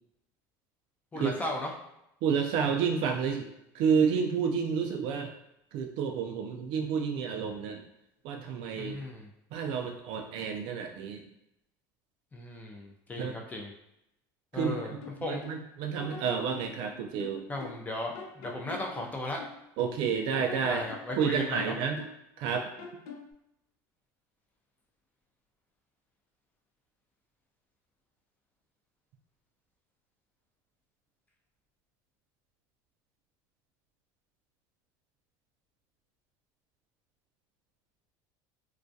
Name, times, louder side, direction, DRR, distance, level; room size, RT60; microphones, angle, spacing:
voice 1, 1.1-1.7 8.7-9.3 12.3-13.7 14.5-14.9 15.2-15.4 17.5-19.4 20.7-21.8, left 1 dB, 15° left, 0 dB, 0.5 m, -36 dB
voice 2, 2.2-3.5 3.7-5.3 5.7-7.8 8.2-8.9 9.5-11.2 13.2-13.4 14.5-15.0 15.3-17.4 19.8-20.9 21.2-22.0 22.4-22.7, right 6 dB, 65° right, 4 dB, 0.4 m, -30 dB
sound 1, 14.6-15.6 16.0-17.9 18.1-20.0 20.3-22.2 22.5-23.3, left 4 dB, 80° left, 0.5 m, -45 dB
2.3 x 2.2 x 2.6 m, 0.83 s
supercardioid pair, 110°, 10 cm